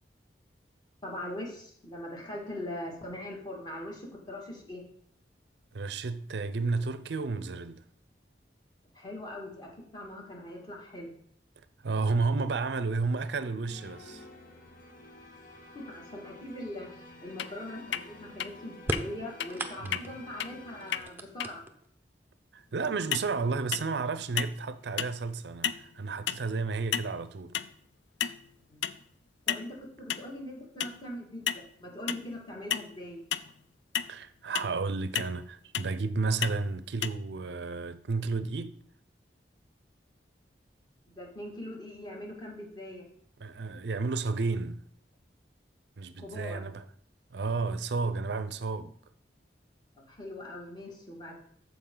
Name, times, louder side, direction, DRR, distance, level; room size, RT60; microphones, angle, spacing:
voice 1, 1.0-4.8 8.9-11.1 15.7-21.6 28.7-28.9 29.5-33.2 41.1-43.0 46.2-46.6 50.0-51.3, left 1 dB, 25° left, 2.1 m, -41 dB
voice 2, 5.7-7.8 11.8-14.2 19.8-20.0 22.5-27.5 34.1-38.8 43.4-44.8 46.0-46.8 47.3-49.0, right 4 dB, 70° right, 0.5 m, -32 dB
sound 1, 13.7-21.0, left 1 dB, 50° left, 1.8 m, -50 dB
sound 2, 17.4-17.5 17.9-18.0 18.4-18.5 18.9-19.0 19.4-19.5 19.9-20.0 20.4-20.5 20.9-21.0 21.4-21.5 23.1-23.3 23.7-24.0 24.4-24.6 25.0-25.2 25.6-25.9 26.3-26.4 26.9-27.2 27.5-27.7 28.2-28.5 28.8-29.0 29.5-29.7 30.1-30.3 30.8-31.0 31.5-31.6 32.1-32.3 32.7-32.9 33.3-33.5 33.9-34.1 34.5-34.7 35.1-35.4 35.7-35.9 36.4-36.6 37.0-37.1, left 9 dB, 90° left, 0.4 m, -32 dB
sound 3, 18.8-20.2 20.8-22.0 23.0-23.1 24.1-24.2 24.7-25.2, right 2 dB, 10° right, 0.6 m, -37 dB
13.5 x 4.9 x 3.8 m
head